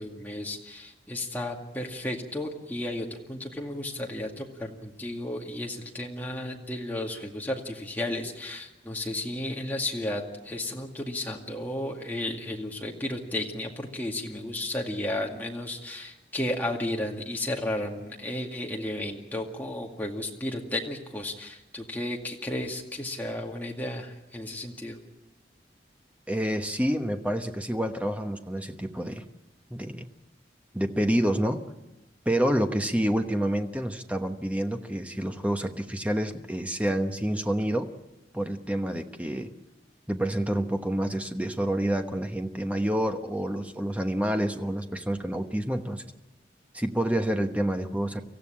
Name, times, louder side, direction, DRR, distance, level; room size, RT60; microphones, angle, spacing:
voice 1, 0.0-25.0, left 1 dB, 10° left, 0 dB, 2.2 m, -33 dB
voice 2, 26.3-29.2 29.7-30.1 30.7-31.6 32.2-37.9 38.3-39.5 40.1-46.0 46.7-48.2, right 1 dB, 10° right, 6 dB, 1.1 m, -28 dB
25.0 x 15.5 x 8.7 m, 1.0 s
head